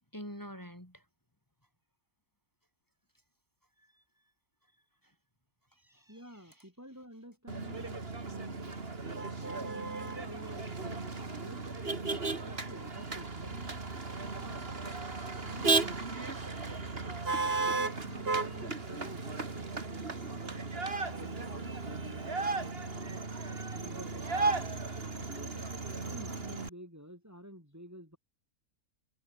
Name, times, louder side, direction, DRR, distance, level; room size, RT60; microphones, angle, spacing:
voice 1, 0.1-1.0 3.8-4.0 5.0-5.1 5.7-6.6, equal, 10° left, 6.9 m, -47 dB
voice 2, 6.1-8.8 9.4-11.7 12.2-13.8 14.2-14.7 15.4-16.3 17.3-20.6 21.0-23.3 23.7-25.7 26.1-28.2, equal, 10° right, 6.9 m, -51 dB
Motor vehicle (road), 7.5-26.7, right 3 dB, 40° right, 2.6 m, -35 dB
omnidirectional pair, 1.6 m